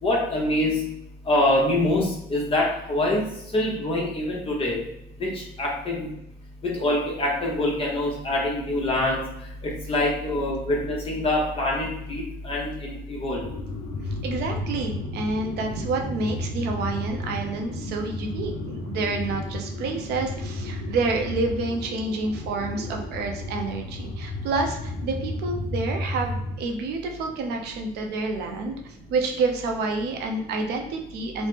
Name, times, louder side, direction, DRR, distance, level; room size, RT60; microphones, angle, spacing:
voice 1, 0.0-0.9 1.3-3.3 3.5-4.8 5.2-6.1 6.6-9.2 9.6-13.4, left 1 dB, 35° left, -3 dB, 0.8 m, -25 dB
sound 1, 13.4-26.6, left 1 dB, 70° left, 0.6 m, -33 dB
voice 2, 14.0-28.8 29.1-31.5, right 3 dB, 75° right, 3 dB, 0.6 m, -28 dB
3.1 x 2.0 x 3.2 m, 0.78 s
cardioid pair, 110°, 17 cm